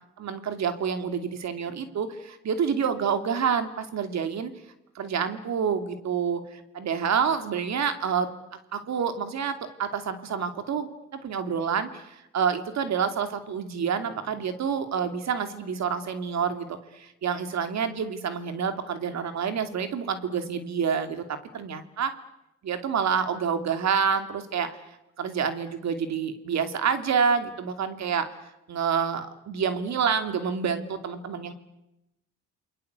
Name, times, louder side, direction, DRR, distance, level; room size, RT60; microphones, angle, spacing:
voice 1, 0.2-4.5 4.9-8.3 8.7-22.2 22.6-24.8 25.2-28.3 28.7-31.5, right 6 dB, 65° right, 9 dB, 2.8 m, -28 dB
29.0 x 20.5 x 8.2 m, 0.90 s
cardioid pair, 90°, 30 cm